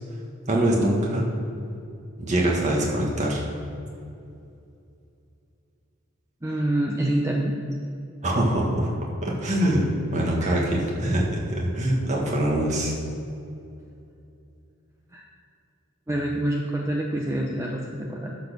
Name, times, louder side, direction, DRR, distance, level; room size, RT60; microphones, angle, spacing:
voice 1, 0.5-1.2 2.2-3.4 8.2-8.9 9.2-12.9, right 1 dB, 35° right, -2 dB, 1.7 m, -23 dB
voice 2, 6.4-7.5 10.4-10.6 15.1-15.2 16.1-18.4, right 1 dB, 15° right, 0 dB, 0.6 m, -26 dB
11.0 x 4.4 x 6.7 m, 2.6 s
head